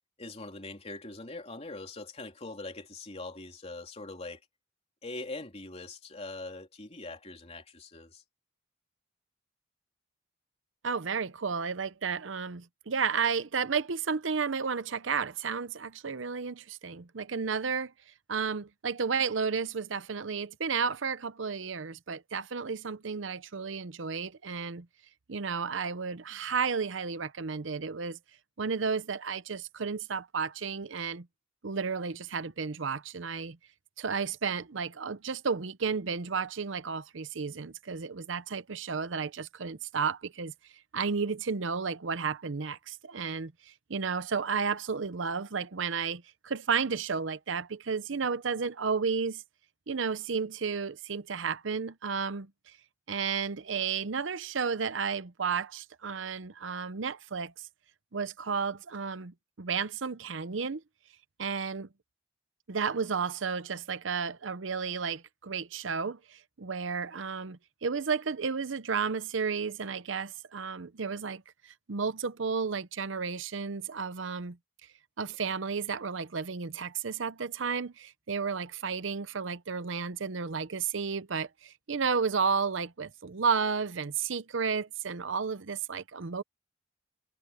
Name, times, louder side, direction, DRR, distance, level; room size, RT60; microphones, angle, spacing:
voice 1, 0.2-4.4 5.0-8.2, left 2 dB, 35° left, 3.2 m, -42 dB
voice 2, 10.8-17.9 18.3-24.9 25.3-28.2 28.6-31.3 31.6-33.6 34.0-40.5 40.9-49.4 49.9-52.5 53.1-57.7 58.1-60.8 61.4-61.9 62.7-74.6 75.2-86.4, right 5 dB, 70° right, 0.8 m, -32 dB
head